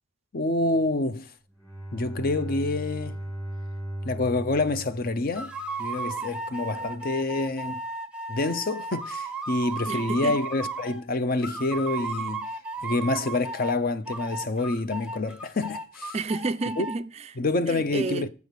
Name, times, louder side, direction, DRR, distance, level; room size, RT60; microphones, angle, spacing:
voice 1, 0.3-1.3 1.9-3.2 4.0-5.5 5.8-7.8 8.3-12.5 12.8-16.2 16.8-16.9 17.4-18.3, left 2 dB, 40° left, 0.5 m, -27 dB
Bowed string instrument, 1.5-6.0, right 1 dB, 10° left, 2.9 m, -37 dB
sound 1, 5.3-11.0 11.4-13.8 14.1-17.0, right 3 dB, 5° right, 0.7 m, -35 dB
voice 2, 9.9-10.3 16.1-17.3 17.7-18.3, right 3 dB, 30° right, 0.3 m, -31 dB
8.2 x 4.7 x 6.7 m
head